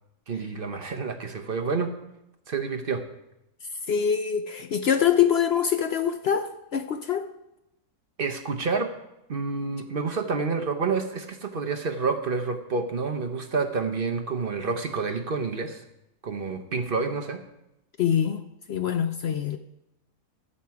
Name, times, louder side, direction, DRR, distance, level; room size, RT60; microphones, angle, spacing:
voice 1, 0.3-1.9 2.5-3.0 8.2-8.9 9.3-15.8 16.2-17.4, right 4 dB, 45° right, 6 dB, 0.9 m, -28 dB
voice 2, 3.9-7.3 18.0-18.4 18.7-19.6, left 8 dB, 65° left, 8 dB, 0.6 m, -24 dB
14.0 x 7.4 x 4.7 m, 0.87 s
omnidirectional pair, 1.6 m